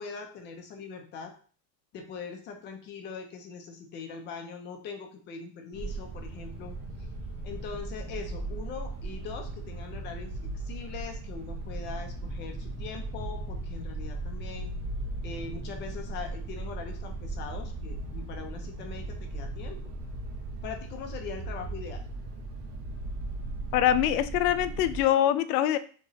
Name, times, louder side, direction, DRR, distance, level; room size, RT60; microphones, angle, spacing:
voice 1, 0.0-1.3 1.9-6.7 7.4-14.7 15.2-19.8 20.6-22.0, left 5 dB, 25° left, 5 dB, 0.4 m, -41 dB
sound 1, 5.7-25.0, right 2 dB, 60° right, 1.4 m, -37 dB
voice 2, 23.7-25.8, left 11 dB, 90° left, 12 dB, 0.6 m, -24 dB
6.2 x 3.0 x 2.8 m, 0.43 s
cardioid pair, 170°, 44 cm